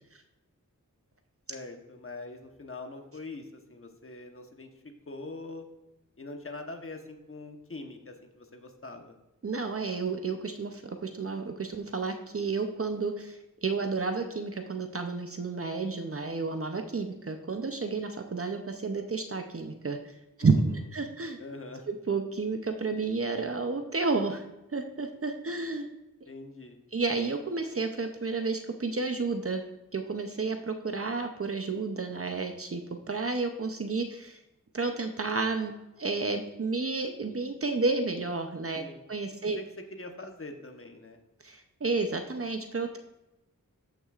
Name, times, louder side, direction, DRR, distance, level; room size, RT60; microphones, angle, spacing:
voice 1, 1.5-4.7 5.1-5.7 6.2-9.2 20.4-20.6 21.4-21.8 26.3-26.8 38.7-39.0 39.5-39.6 39.9-41.2, left 2 dB, 40° left, 4 dB, 1.1 m, -43 dB
voice 2, 9.4-20.5 20.9-21.4 21.9-24.5 24.7-25.9 26.9-29.6 29.9-34.4 34.7-38.8 39.1-39.6 41.4-43.0, right 4 dB, 45° right, 6 dB, 0.6 m, -31 dB
14.0 x 6.0 x 2.4 m, 0.95 s
wide cardioid pair, 75°, 33 cm